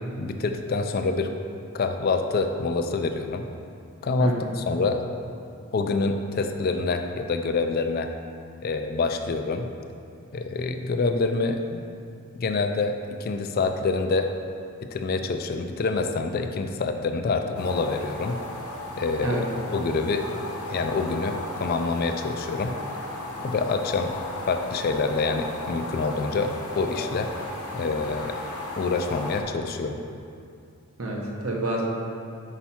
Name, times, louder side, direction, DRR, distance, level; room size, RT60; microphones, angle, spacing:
voice 1, 0.2-1.3 1.7-3.5 4.0-5.1 5.7-8.1 8.6-9.7 10.3-11.8 12.3-14.3 14.8-18.4 19.0-20.2 20.7-22.8 23.4-24.1 24.4-27.3 27.7-28.3 28.8-30.0, left 3 dB, 40° left, 6 dB, 0.3 m, -26 dB
voice 2, 4.2-4.5 19.2-19.5 31.0-31.8, right 1 dB, 70° right, -2 dB, 1.0 m, -28 dB
sound 1, 17.5-29.4, left 1 dB, 85° left, 0.9 m, -35 dB
5.7 x 4.6 x 4.3 m, 2.5 s
head